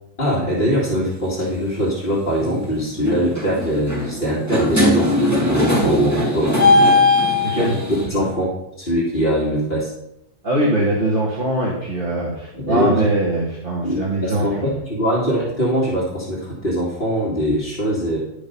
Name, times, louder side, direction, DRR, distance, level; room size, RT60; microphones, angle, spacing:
voice 1, 0.2-5.1 5.5-6.7 8.1-9.9 12.5-13.0 13.8-18.2, equal, 45° left, -7 dB, 2.4 m, -22 dB
sound 1, 1.2-1.4 2.4-2.6 3.0-8.1, left 2 dB, 15° right, 2.3 m, -18 dB
voice 2, 7.4-7.8 8.1-8.3 10.4-14.7, right 1 dB, 45° right, -6 dB, 2.2 m, -22 dB
11.0 x 5.2 x 5.5 m, 0.85 s
omnidirectional pair, 1.2 m